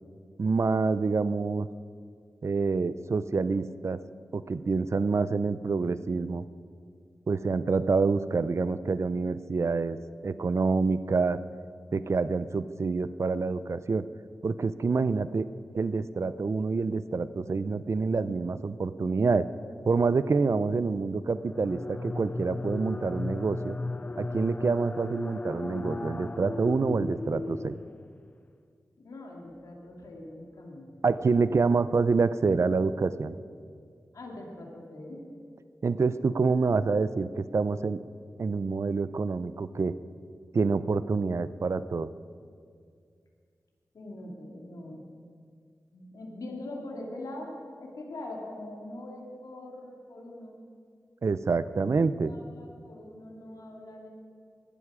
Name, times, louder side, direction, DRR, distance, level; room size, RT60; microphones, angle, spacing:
voice 1, 0.4-1.7 2.4-4.0 4.3-6.4 7.3-10.0 10.2-11.4 11.9-14.0 14.4-15.5 15.7-19.5 19.8-23.8 24.2-27.8 31.0-33.4 35.8-38.0 38.4-39.9 40.5-42.1 51.2-52.3, right 4 dB, 55° right, 14 dB, 0.6 m, -27 dB
sound 1, 21.4-28.3, left 2 dB, 25° left, 0.3 m, -36 dB
voice 2, 29.0-31.4 34.1-35.3 43.9-45.1 45.9-50.6 52.1-54.1, left 1 dB, 90° left, 0 dB, 2.5 m, -42 dB
18.5 x 12.0 x 5.0 m, 2.2 s
wide cardioid pair, 80°, 6 cm